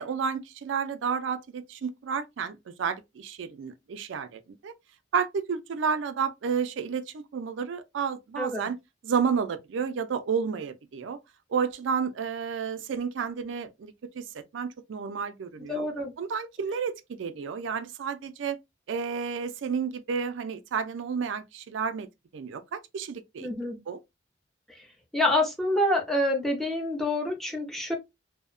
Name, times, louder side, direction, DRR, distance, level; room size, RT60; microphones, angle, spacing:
voice 1, 0.0-4.7 5.1-8.8 9.0-11.2 11.5-15.8 16.2-18.6 18.9-22.1 22.3-23.5 23.9-24.0, right 6 dB, 80° right, 0.4 m, -31 dB
voice 2, 8.4-8.7 15.7-16.1 23.4-23.8 25.1-27.9, left 1 dB, ahead, 0.6 m, -27 dB
2.7 x 2.1 x 2.4 m
head